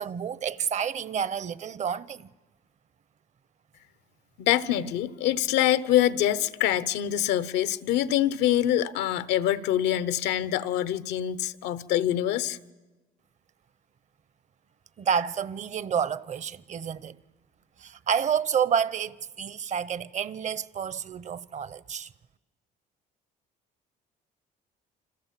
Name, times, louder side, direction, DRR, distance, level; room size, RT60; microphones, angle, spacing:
voice 1, 0.0-2.3 15.0-17.2 17.8-22.1, right 7 dB, 45° right, 0.8 m, -29 dB
voice 2, 4.4-12.6, left 12 dB, 90° left, 0.9 m, -25 dB
29.5 x 26.0 x 7.6 m
cardioid pair, 110°, 17 cm